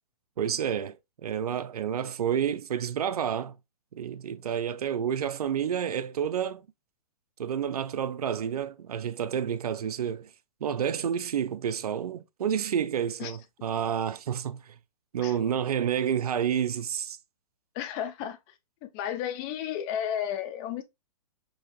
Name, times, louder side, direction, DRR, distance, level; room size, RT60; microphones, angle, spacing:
voice 1, 0.4-1.0 1.2-3.6 3.9-6.7 7.4-10.3 10.6-14.7 15.1-17.2, right 8 dB, 85° right, 0.6 m, -29 dB
voice 2, 17.7-18.4 18.8-20.8, left 10 dB, 20° left, 0.4 m, -32 dB
5.5 x 2.8 x 2.9 m
hypercardioid pair, 155°, 19 cm